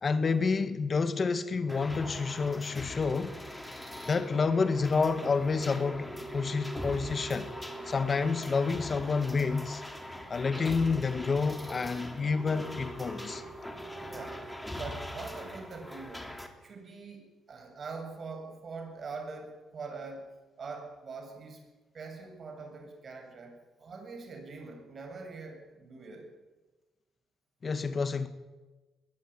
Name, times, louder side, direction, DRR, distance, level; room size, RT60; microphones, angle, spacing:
voice 1, 0.0-3.4 4.1-7.5 7.9-9.8 10.3-13.4 27.6-28.3, left 4 dB, 40° left, 1.7 m, -29 dB
sound 1, 1.7-16.5, equal, 10° left, 3.4 m, -41 dB
voice 2, 14.1-16.3 16.6-21.6 21.9-26.3, right 4 dB, 45° right, 7.4 m, -43 dB
21.0 x 19.0 x 9.7 m
cardioid pair, 90°, 0 cm